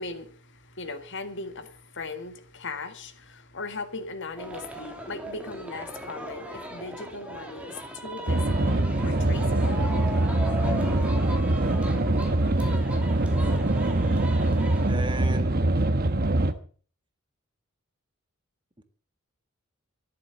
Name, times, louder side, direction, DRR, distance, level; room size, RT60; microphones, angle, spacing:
voice 1, 0.0-9.9, left 3 dB, 55° left, 1.8 m, -38 dB
sound 1, 4.4-14.9, right 1 dB, 5° right, 3.2 m, -38 dB
sound 2, 8.3-16.5, right 1 dB, 45° right, 1.2 m, -23 dB
voice 2, 14.9-15.6 18.8-18.9, right 2 dB, 20° right, 1.6 m, -35 dB
13.5 x 11.5 x 6.9 m
head